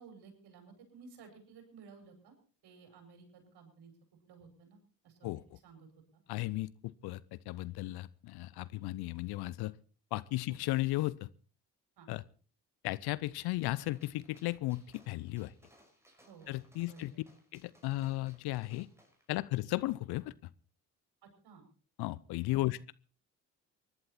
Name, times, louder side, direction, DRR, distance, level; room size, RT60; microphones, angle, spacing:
voice 1, 0.0-2.4 2.6-3.9 4.3-6.2 10.5-10.6 12.0-12.1 16.2-16.6 16.8-17.2 21.2-21.7 22.5-22.7, right 5 dB, 60° right, 5 dB, 5.5 m, -56 dB
voice 2, 6.3-9.7 10.1-11.3 12.1-12.2 12.8-15.5 16.5-17.1 17.5-18.9 19.3-20.3 22.0-22.9, left 18 dB, 60° left, 20 dB, 0.8 m, -35 dB
Gunshot gunfire, 13.8-19.3, equal, 5° right, 5.9 m, -65 dB
24.0 x 11.5 x 4.3 m, 0.38 s
figure-of-eight pair, 45°, 44 cm